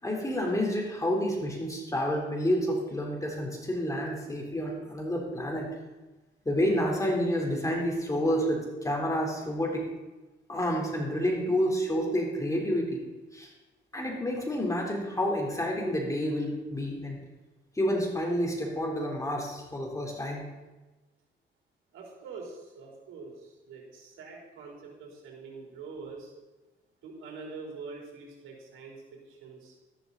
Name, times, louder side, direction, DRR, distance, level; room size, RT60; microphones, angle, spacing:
voice 1, 0.0-5.7 6.5-9.8 10.5-13.0 13.3-13.5 13.9-17.2 17.8-20.4, equal, 15° left, -1 dB, 3.6 m, -29 dB
voice 2, 21.9-26.3 27.0-29.0 29.3-29.8, right 4 dB, 85° right, -1 dB, 3.5 m, -44 dB
13.0 x 12.0 x 4.0 m, 1.1 s
cardioid pair, 90°, 20 cm